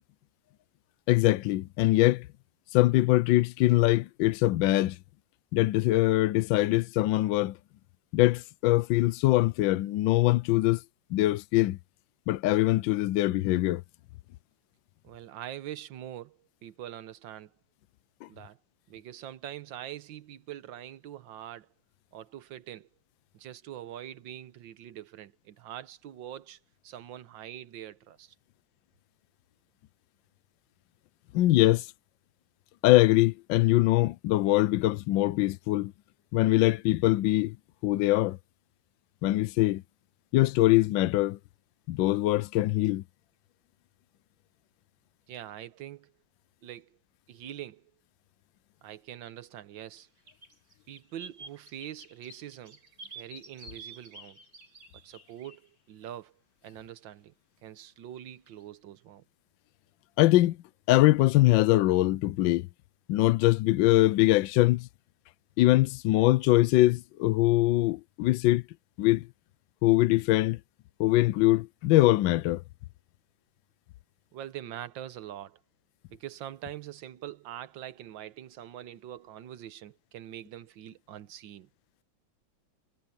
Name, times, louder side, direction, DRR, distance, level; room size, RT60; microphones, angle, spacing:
voice 1, 1.1-2.3 2.7-5.0 5.5-7.6 8.1-10.8 11.1-11.8 12.3-13.8 18.2-18.3 31.3-31.9 32.8-35.9 36.3-37.6 37.8-38.4 39.2-39.8 40.3-41.4 41.9-43.0 60.2-60.6 60.9-62.7 63.1-64.9 65.6-68.6 69.0-69.3 69.8-70.6 71.0-72.6, left 17 dB, 80° left, 1.3 m, -23 dB
voice 2, 15.0-17.5 18.3-18.6 18.9-21.7 22.1-22.9 23.3-28.4 45.3-46.1 46.6-47.0 47.3-47.9 48.8-50.1 50.9-52.8 53.1-54.4 55.0-56.3 56.6-57.3 57.6-59.2 74.3-75.6 76.1-81.7, right 11 dB, 75° right, 1.7 m, -43 dB
sound 1, 50.0-50.1 50.3-55.6 58.5-58.6, right 3 dB, 50° right, 6.0 m, -49 dB
omnidirectional pair, 2.1 m